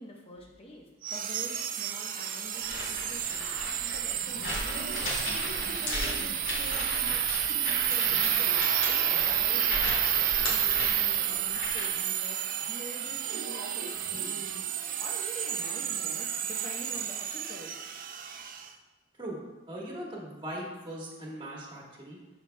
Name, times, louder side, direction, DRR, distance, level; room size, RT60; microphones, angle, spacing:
voice 1, 0.0-12.4 12.7-14.6 15.0-17.7 22.2-22.3, equal, 30° left, -1 dB, 0.9 m, -46 dB
sound 1, 1.0-18.7, right 10 dB, 45° right, 0.4 m, -30 dB
sound 2, 2.5-12.0, left 1 dB, 85° left, 2.2 m, -36 dB
voice 2, 19.7-22.2, right 1 dB, 25° right, -3 dB, 1.4 m, -39 dB
12.0 x 4.9 x 2.2 m, 1.1 s
head